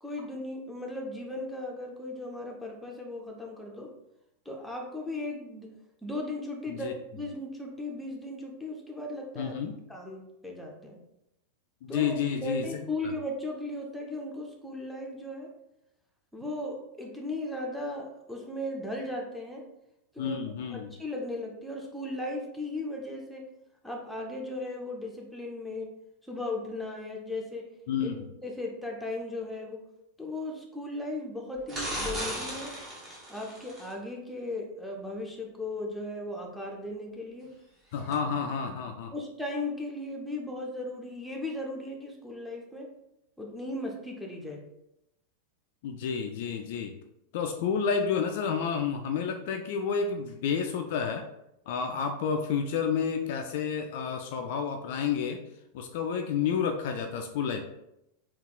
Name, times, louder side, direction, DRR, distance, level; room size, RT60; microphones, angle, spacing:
voice 1, 0.0-3.9 4.4-5.7 6.0-9.6 9.9-11.0 11.9-12.2 12.4-15.5 16.3-19.7 20.1-23.5 23.8-25.9 26.2-27.7 28.0-29.8 30.2-32.8 33.3-37.5 39.1-42.9 43.4-44.6, left 2 dB, ahead, -1 dB, 0.7 m, -37 dB
voice 2, 9.4-9.8 11.8-12.7 20.2-20.9 27.9-28.3 37.9-39.1 45.8-46.9 47.3-51.3 51.7-55.4 55.7-57.6, left 6 dB, 50° left, 5 dB, 0.3 m, -30 dB
sound 1, 31.7-33.9 38.1-38.2, right 1 dB, 20° right, 1.0 m, -36 dB
3.5 x 2.4 x 3.7 m, 0.84 s
figure-of-eight pair, 90°, 0 cm